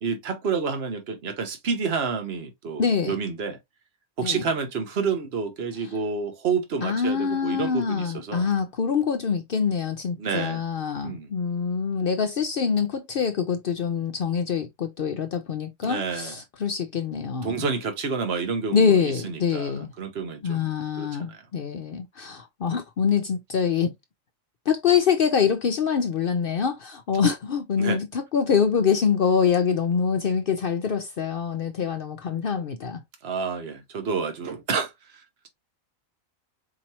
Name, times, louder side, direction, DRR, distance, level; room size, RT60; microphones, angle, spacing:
voice 1, 0.0-3.6 4.2-8.5 10.2-10.6 11.0-11.3 15.8-16.4 17.4-20.7 21.0-21.4 27.8-28.0 33.2-35.5, right 5 dB, 50° right, 1.2 m, -29 dB
voice 2, 2.8-3.2 4.2-4.4 6.8-17.6 18.7-19.9 20.4-23.9 24.7-33.0, left 6 dB, 60° left, 0.6 m, -25 dB
4.7 x 3.0 x 2.8 m
omnidirectional pair, 1.4 m